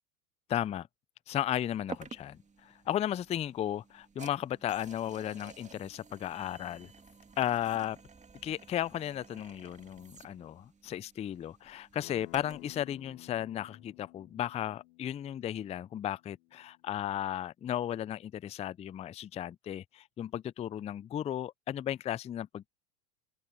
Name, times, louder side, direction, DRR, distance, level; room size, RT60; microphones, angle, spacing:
voice 1, 0.5-0.9 1.3-6.9 7.4-8.0 8.4-22.7, left 11 dB, 15° left, 0.4 m, -35 dB
sound 1, 1.9-12.8, right 4 dB, 15° right, 2.5 m, -52 dB
Acoustic guitar, 12.0-17.2, left 21 dB, 70° left, 1.7 m, -55 dB
hypercardioid pair, 90°, 45 cm